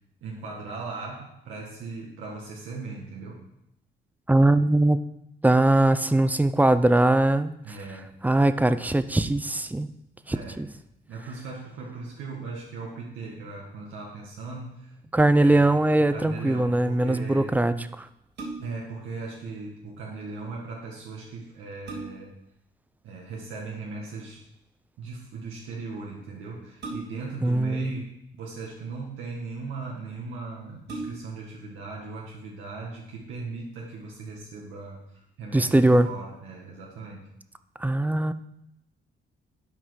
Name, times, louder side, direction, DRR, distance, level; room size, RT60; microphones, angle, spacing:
voice 1, 0.2-3.4 7.6-8.1 10.3-10.7 11.1-15.0 15.3-17.6 18.6-22.3 23.0-24.4 25.0-37.3, right 3 dB, 85° right, -3 dB, 1.7 m, -38 dB
voice 2, 4.3-5.0 5.4-7.5 8.2-9.9 10.3-10.7 15.1-18.1 27.4-27.9 35.5-36.1 37.8-38.3, right 1 dB, 10° right, 12 dB, 0.5 m, -21 dB
sound 1, 18.3-18.9 20.9-21.0 21.5-22.4 24.0-24.3 26.8-27.4 28.4-29.1 29.8-29.9 30.2-30.3 30.8-31.5 32.0-32.1, right 3 dB, 60° right, 3.2 m, -39 dB
12.0 x 5.1 x 4.8 m, 0.80 s
cardioid pair, 90°, 20 cm